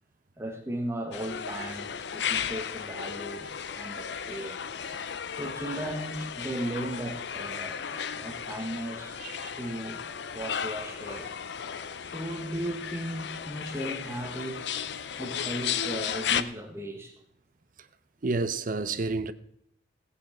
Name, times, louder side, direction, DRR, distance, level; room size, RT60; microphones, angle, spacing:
voice 1, 0.4-4.6 5.3-7.9 8.1-9.2 9.6-10.0 10.3-11.3 12.0-14.9 15.2-17.1, right 1 dB, 15° right, 1.4 m, -36 dB
sound 1, 1.1-16.4, left 8 dB, 75° left, 0.5 m, -35 dB
voice 2, 9.2-9.6 18.2-19.3, right 3 dB, 50° right, 0.7 m, -30 dB
16.0 x 8.6 x 4.4 m
head